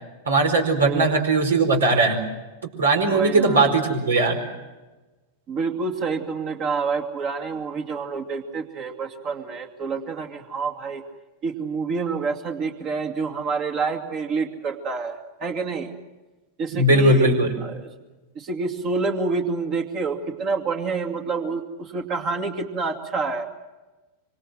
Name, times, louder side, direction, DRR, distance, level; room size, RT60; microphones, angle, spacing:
voice 1, 0.3-2.2 2.8-4.4 16.7-17.5, right 2 dB, 70° right, 5 dB, 4.8 m, -19 dB
voice 2, 3.1-3.7 5.5-11.0 11.4-15.9 16.6-17.3 17.6-17.9 18.4-23.4, right 4 dB, 35° right, 4 dB, 2.4 m, -28 dB
25.5 x 25.5 x 7.7 m, 1.2 s
figure-of-eight pair, 90°, 0 cm